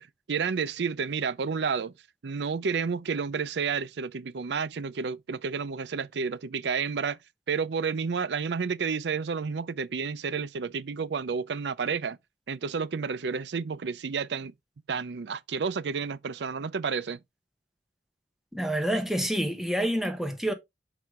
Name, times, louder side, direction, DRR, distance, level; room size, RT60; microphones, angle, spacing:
voice 1, 0.0-1.9 2.2-7.2 7.5-12.2 12.5-14.5 14.9-17.2, right 5 dB, 75° right, 0.5 m, -30 dB
voice 2, 18.5-20.5, right 1 dB, ahead, 1.0 m, -28 dB
5.7 x 4.8 x 3.7 m
head